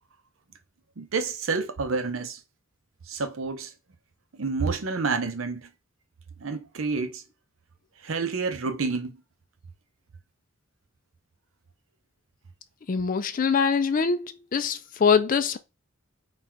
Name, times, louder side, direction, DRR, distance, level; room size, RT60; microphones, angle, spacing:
voice 1, 1.0-2.4 3.1-3.7 4.3-5.7 6.4-7.2 8.0-9.2, right 4 dB, 75° right, 0.7 m, -29 dB
voice 2, 12.9-15.6, left 6 dB, 40° left, 0.4 m, -23 dB
4.0 x 2.4 x 4.3 m
head